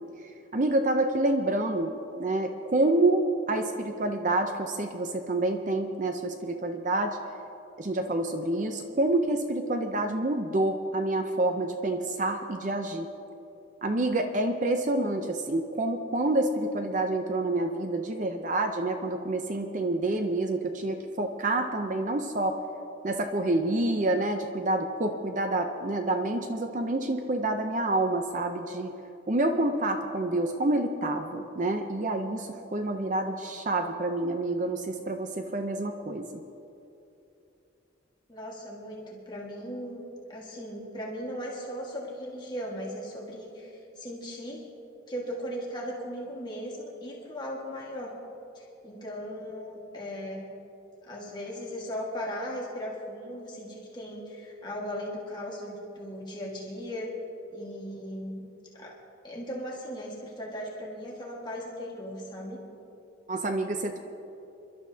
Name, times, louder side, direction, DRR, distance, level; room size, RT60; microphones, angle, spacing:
voice 1, 0.5-7.2 7.8-13.1 13.8-22.6 23.0-28.9 29.3-36.4 63.3-64.0, right 2 dB, 40° right, 6 dB, 0.6 m, -28 dB
voice 2, 38.3-44.7 45.1-48.1 48.5-50.5 51.1-57.1 57.5-58.4 58.7-58.9 59.2-62.6, equal, 25° left, -4 dB, 1.7 m, -37 dB
27.0 x 12.0 x 2.8 m, 2.9 s
head